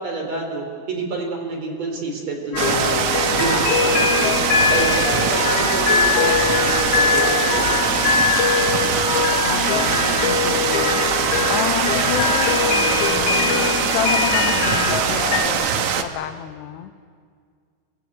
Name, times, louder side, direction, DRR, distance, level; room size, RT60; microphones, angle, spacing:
voice 1, 0.0-3.1 3.4-4.2 4.7-7.9, right 3 dB, 40° right, 2 dB, 4.1 m, -28 dB
sound 1, 2.5-15.5, left 7 dB, 70° left, 3.2 m, -22 dB
sound 2, 2.6-16.0, right 8 dB, 65° right, 1.8 m, -22 dB
sound 3, 8.3-13.5, equal, ahead, 4.0 m, -38 dB
voice 2, 9.4-13.1 13.8-16.9, left 12 dB, 90° left, 10 dB, 3.0 m, -30 dB
27.0 x 22.0 x 8.5 m, 2.1 s
omnidirectional pair, 4.8 m